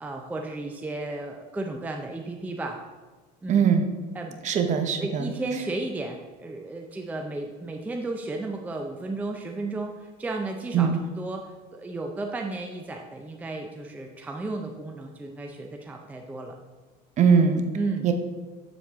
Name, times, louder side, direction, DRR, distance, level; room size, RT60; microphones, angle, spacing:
voice 1, 0.0-2.8 3.4-3.7 4.1-4.5 5.0-16.6 17.7-18.1, right 2 dB, 10° right, 3 dB, 0.5 m, -34 dB
voice 2, 3.5-3.9 4.4-5.3 10.7-11.0 17.2-17.7 18.0-18.1, right 6 dB, 35° right, 7 dB, 0.8 m, -21 dB
7.3 x 7.2 x 3.5 m, 1.4 s
cardioid pair, 135°, 20 cm